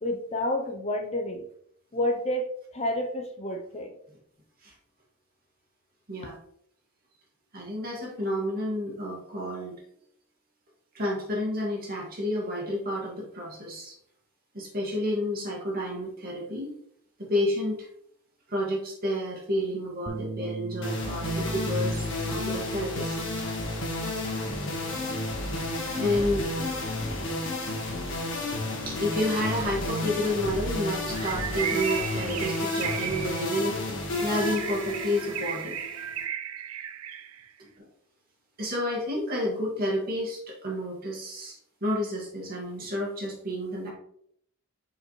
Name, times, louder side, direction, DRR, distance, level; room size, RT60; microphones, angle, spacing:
voice 1, 0.0-1.5 1.9-3.9, left 1 dB, 30° left, 3 dB, 0.6 m, -29 dB
voice 2, 7.5-9.8 10.9-14.0 14.5-16.7 17.2-17.9 18.5-23.2 26.0-26.5 28.9-33.8 34.2-35.8 37.6-37.9 38.6-43.9, left 1 dB, 45° right, -2 dB, 2.0 m, -30 dB
Bass guitar, 20.1-26.3, right 3 dB, 25° right, 0.4 m, -41 dB
sound 1, 20.8-36.2, left 2 dB, 60° left, 1.6 m, -31 dB
Bird, 31.1-37.5, right 9 dB, 85° right, 0.5 m, -35 dB
6.5 x 4.9 x 3.2 m, 0.69 s
head